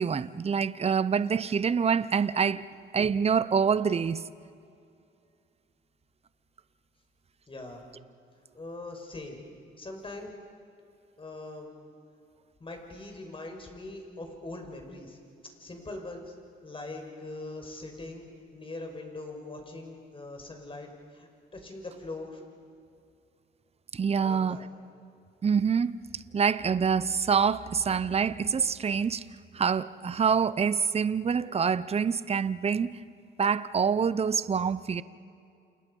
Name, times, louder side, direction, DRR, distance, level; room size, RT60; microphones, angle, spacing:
voice 1, 0.0-2.6 2.9-4.2 23.9-24.6 25.4-25.9 26.3-29.2 29.5-33.0 33.4-35.0, right 6 dB, 30° right, 0.8 m, -26 dB
voice 2, 7.5-7.8 8.5-9.4 9.8-10.3 11.2-11.7 12.6-15.2 15.6-16.3 16.6-18.3 18.5-22.4 24.2-24.7, left 2 dB, 25° left, 5.6 m, -41 dB
29.5 x 28.0 x 5.5 m
cardioid pair, 90°, 20 cm